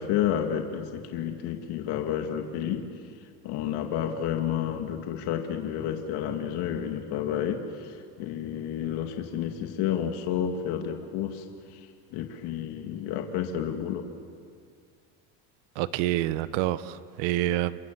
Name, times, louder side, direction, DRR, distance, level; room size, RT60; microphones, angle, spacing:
voice 1, 0.0-2.8 3.2-14.1, left 9 dB, 65° left, 4 dB, 2.3 m, -31 dB
voice 2, 15.7-17.8, right 14 dB, 75° right, 14 dB, 1.2 m, -27 dB
29.5 x 22.5 x 7.6 m, 2.2 s
supercardioid pair, 120°, 43 cm